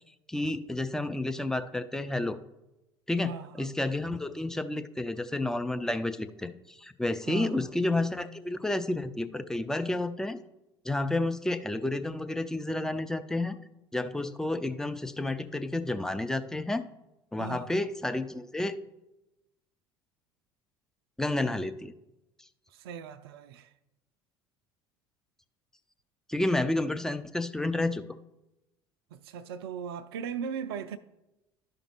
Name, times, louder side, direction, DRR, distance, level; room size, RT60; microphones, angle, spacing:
voice 1, 0.3-2.4 3.1-10.4 10.8-13.6 13.9-16.8 17.3-18.8 21.2-21.9 26.3-28.2, left 2 dB, 5° left, 0.4 m, -30 dB
voice 2, 3.2-3.7 7.3-7.7 17.4-17.8 22.7-23.7 29.1-31.0, right 7 dB, 65° right, 0.4 m, -38 dB
12.0 x 5.1 x 3.0 m
figure-of-eight pair, 65°, 14 cm